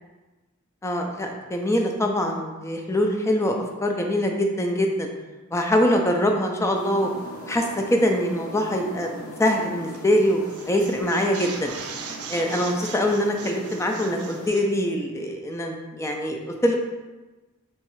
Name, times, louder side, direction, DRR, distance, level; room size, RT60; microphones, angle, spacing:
voice 1, 0.8-3.5 3.8-5.1 5.5-7.1 7.4-9.1 9.4-10.4 10.7-11.7 12.3-16.8, equal, 15° left, 2 dB, 0.4 m, -23 dB
sound 1, 6.7-14.5, equal, 70° left, 0.8 m, -40 dB
sound 2, 9.9-10.2 10.5-14.7, right 6 dB, 85° right, 0.5 m, -39 dB
4.7 x 3.1 x 3.0 m, 1.2 s
head